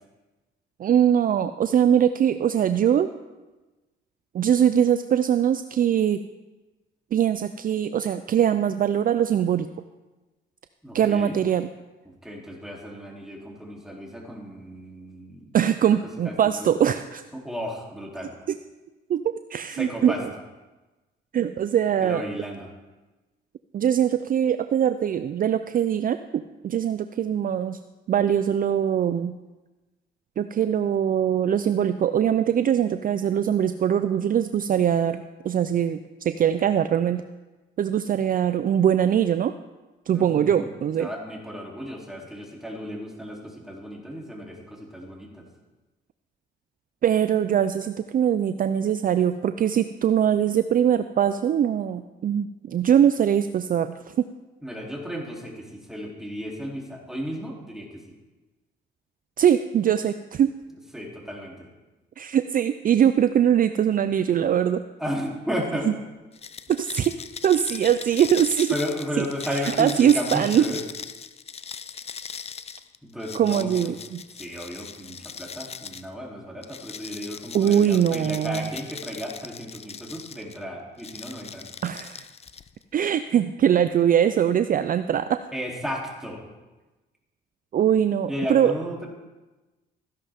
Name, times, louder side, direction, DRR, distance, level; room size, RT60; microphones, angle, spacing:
voice 1, 0.8-3.1 4.3-6.2 7.1-9.7 10.9-11.7 15.5-17.2 18.5-18.6 19.1-20.3 21.3-22.2 23.7-27.8 28.1-29.4 30.4-37.2 37.8-39.5 40.1-41.1 47.0-54.2 59.4-60.5 62.2-64.8 66.7-67.2 67.4-68.7 69.2-70.8 73.3-74.2 77.5-78.7 81.8-82.2 82.9-85.4 87.7-88.7, right 9 dB, 45° right, 10 dB, 0.4 m, -22 dB
voice 2, 10.8-11.4 12.2-15.5 15.8-16.0 16.2-16.7 17.3-18.3 19.7-20.2 22.0-22.7 40.1-45.5 54.6-58.1 60.9-61.7 65.0-66.0 68.7-70.8 73.0-73.9 74.3-81.7 85.5-86.4 88.3-89.1, equal, ahead, -2 dB, 3.1 m, -34 dB
sound 1, 66.3-76.1 76.6-80.6 81.0-82.8, left 6 dB, 30° left, 0.5 m, -39 dB
14.5 x 11.0 x 3.6 m, 1.1 s
cardioid pair, 90°, 20 cm